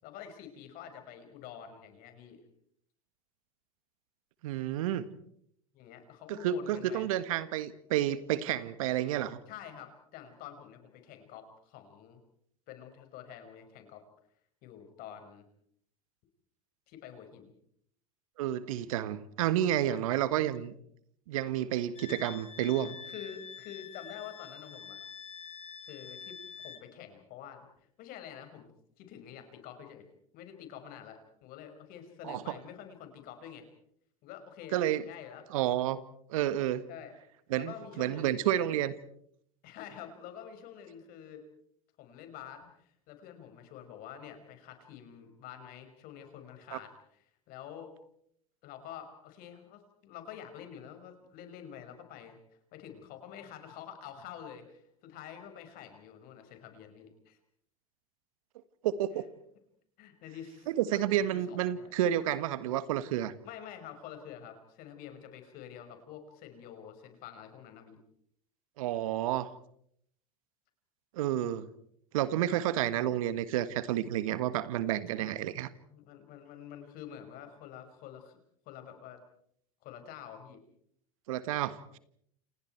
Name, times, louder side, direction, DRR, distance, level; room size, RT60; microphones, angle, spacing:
voice 1, 0.0-2.4 5.7-7.1 9.5-12.2 12.7-14.0 14.6-15.5 16.9-17.5 19.9-20.3 23.0-25.0 25.8-27.7 28.0-28.7 29.0-30.0 30.3-33.7 34.2-35.4 36.9-37.1 37.6-38.5 39.6-41.4 42.0-47.9 48.6-52.4 52.7-57.4 60.0-61.9 63.4-68.0 75.1-75.4 75.9-78.4 78.7-79.2 79.8-80.6, left 9 dB, 55° left, 7 dB, 5.6 m, -48 dB
voice 2, 4.4-5.1 6.3-9.4 18.4-20.7 21.3-22.9 32.2-32.5 34.7-35.0 35.5-36.0 36.3-36.8 37.5-38.9 46.7-46.8 58.8-59.3 60.7-63.3 68.8-69.5 71.1-71.7 72.1-75.7 81.3-82.0, right 12 dB, 70° right, 14 dB, 1.6 m, -30 dB
Wind instrument woodwind instrument, 22.0-26.9, left 7 dB, 35° left, 2.4 m, -46 dB
29.5 x 28.0 x 4.6 m, 0.68 s
hypercardioid pair, 85°, 18 cm